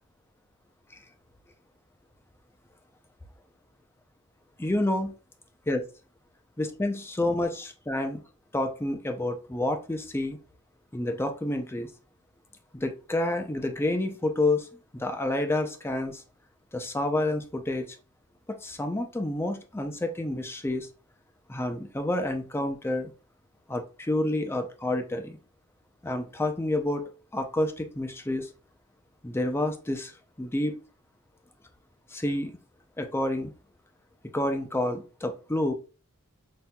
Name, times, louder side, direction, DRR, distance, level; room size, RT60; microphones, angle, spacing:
voice 1, 4.6-5.1 5.7-5.8 6.6-8.2 8.5-10.4 10.9-11.9 12.7-14.7 14.9-16.2 16.7-18.0 18.5-20.9 21.5-23.1 23.7-25.4 26.0-27.0 27.3-28.5 29.2-30.1 30.4-30.8 32.1-32.5 33.0-33.5 34.3-35.7, left 1 dB, 10° left, 6 dB, 0.5 m, -29 dB
5.7 x 2.7 x 2.2 m, 0.35 s
head